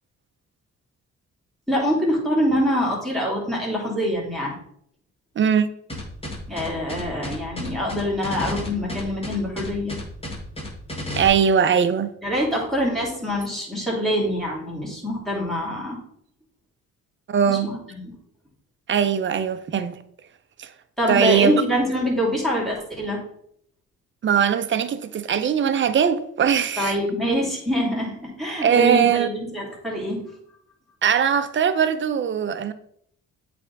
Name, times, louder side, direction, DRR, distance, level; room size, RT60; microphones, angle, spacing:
voice 1, 1.7-4.5 6.5-10.0 12.2-16.0 17.5-18.1 21.0-23.2 26.8-30.2, equal, ahead, 2.8 m, -25 dB
voice 2, 5.4-5.7 11.2-12.1 17.3-17.7 18.9-20.0 20.6-20.7 21.1-21.6 24.2-27.0 28.6-29.3 31.0-32.7, right 7 dB, 40° right, 0.6 m, -20 dB
sound 1, 5.9-11.3, left 1 dB, 20° left, 1.8 m, -32 dB
8.2 x 3.4 x 4.0 m
cardioid pair, 90°, 30 cm